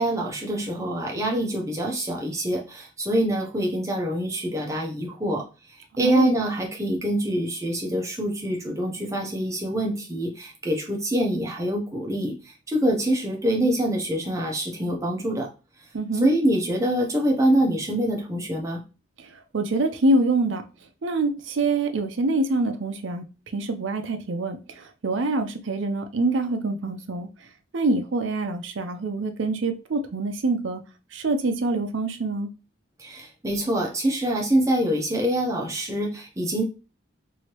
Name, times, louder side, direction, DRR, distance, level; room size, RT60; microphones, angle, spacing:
voice 1, 0.0-5.4 6.0-15.5 16.2-18.8 33.0-36.6, right 1 dB, 15° right, 0.7 m, -25 dB
voice 2, 6.0-6.3 15.9-16.3 19.2-20.7 21.0-23.2 23.5-27.3 27.7-30.8 31.1-32.5, right 2 dB, 75° right, 0.5 m, -25 dB
3.1 x 2.7 x 2.9 m
head